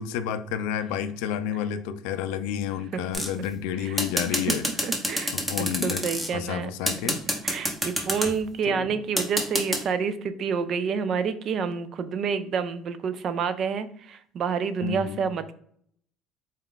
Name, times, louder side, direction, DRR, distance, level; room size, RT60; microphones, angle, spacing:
voice 1, 0.0-4.6 5.3-6.1 6.3-7.2 8.7-8.9 14.8-15.3, left 9 dB, 85° left, 11 dB, 0.3 m, -30 dB
sound 1, 3.1-3.5 4.0-6.3 6.9-8.3 9.2-9.8, equal, 5° right, 0.9 m, -26 dB
voice 2, 4.8-5.3 5.6-6.7 7.4-15.5, right 6 dB, 45° right, 12 dB, 0.4 m, -28 dB
4.2 x 2.4 x 3.7 m, 0.64 s
cardioid pair, 130°, 0 cm